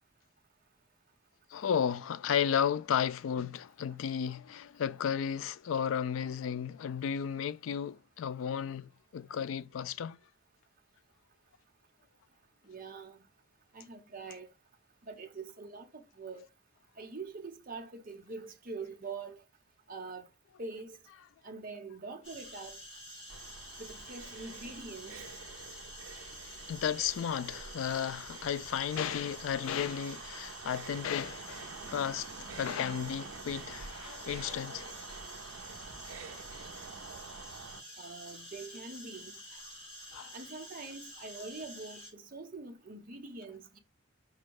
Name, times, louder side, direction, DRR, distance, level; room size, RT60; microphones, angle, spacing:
voice 1, 1.5-10.2 26.7-32.3 32.6-34.9 40.1-40.3, left 8 dB, 75° left, 0.3 m, -33 dB
voice 2, 12.6-13.2 13.7-14.5 15.0-16.5 17.0-19.4 19.9-20.3 20.6-21.0 21.4-22.8 23.8-25.3 38.0-39.4 40.3-43.8, right 3 dB, 45° right, 0.9 m, -44 dB
sound 1, 22.2-42.1, equal, 35° left, 3.1 m, -49 dB
sound 2, 23.3-37.8, right 5 dB, 90° right, 0.5 m, -47 dB
5.2 x 2.2 x 4.6 m
head